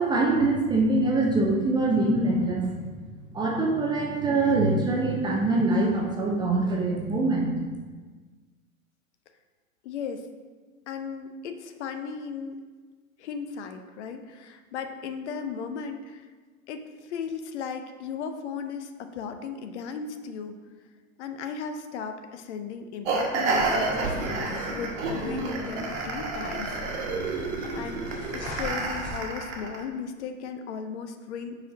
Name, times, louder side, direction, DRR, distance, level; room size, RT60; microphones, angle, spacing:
voice 1, 0.0-2.7 3.3-7.6, right 2 dB, 10° right, -1 dB, 0.4 m, -24 dB
voice 2, 9.8-10.3 10.9-12.6 13.2-16.3 16.7-20.6 21.2-24.2 24.7-31.7, left 6 dB, 55° left, 7 dB, 0.7 m, -36 dB
sound 1, 23.0-29.8, right 3 dB, 55° right, 1.2 m, -30 dB
sound 2, 23.5-29.2, left 1 dB, 35° left, 1.8 m, -38 dB
5.0 x 4.3 x 5.0 m, 1.4 s
figure-of-eight pair, 95°, 42 cm